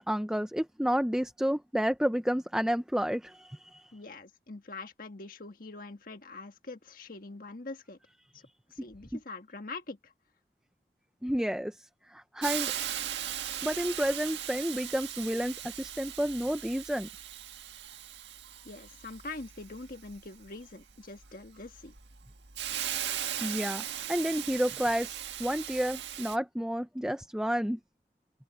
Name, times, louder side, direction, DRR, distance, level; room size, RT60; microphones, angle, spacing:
voice 1, 0.0-3.9 8.8-8.9 11.2-12.7 13.6-17.1 23.4-27.8, equal, 5° right, 0.7 m, -31 dB
voice 2, 3.9-8.0 8.3-8.4 8.7-10.1 18.6-21.9, left 3 dB, 50° left, 1.5 m, -44 dB
Hiss, 12.4-26.4, right 10 dB, 85° right, 1.8 m, -38 dB
open air
head